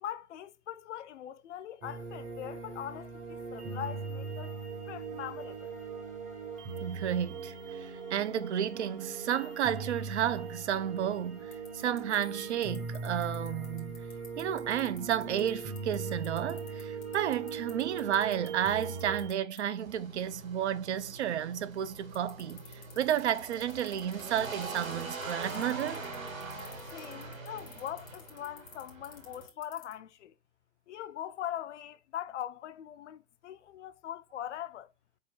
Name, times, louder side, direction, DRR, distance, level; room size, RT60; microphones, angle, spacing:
voice 1, 0.0-4.5 4.9-5.8 26.9-30.3 30.9-34.9, left 11 dB, 60° left, 0.5 m, -41 dB
sound 1, 1.8-19.3, right 4 dB, 20° right, 0.7 m, -40 dB
voice 2, 6.8-14.1 14.4-22.6 23.0-26.0, right 10 dB, 55° right, 0.5 m, -32 dB
sound 2, 11.5-19.3 19.6-19.7 22.1-29.9, left 8 dB, 10° left, 0.3 m, -50 dB
sound 3, 19.8-29.5, right 3 dB, 80° right, 1.9 m, -43 dB
4.3 x 3.6 x 3.2 m
figure-of-eight pair, 115°, 40 cm